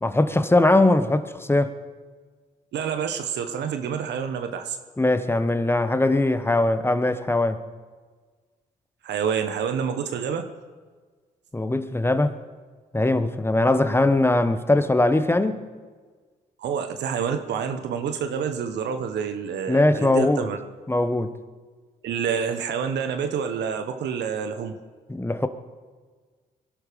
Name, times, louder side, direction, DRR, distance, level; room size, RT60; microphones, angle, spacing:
voice 1, 0.0-1.7 5.0-7.6 11.5-12.3 12.9-15.6 19.7-20.5 20.9-21.3 25.1-25.5, left 2 dB, 15° left, 11 dB, 1.2 m, -21 dB
voice 2, 2.7-4.8 9.0-10.5 16.6-20.6 22.0-24.8, right 7 dB, 75° right, 7 dB, 1.2 m, -28 dB
21.5 x 12.0 x 5.2 m, 1.5 s
supercardioid pair, 65°, 18 cm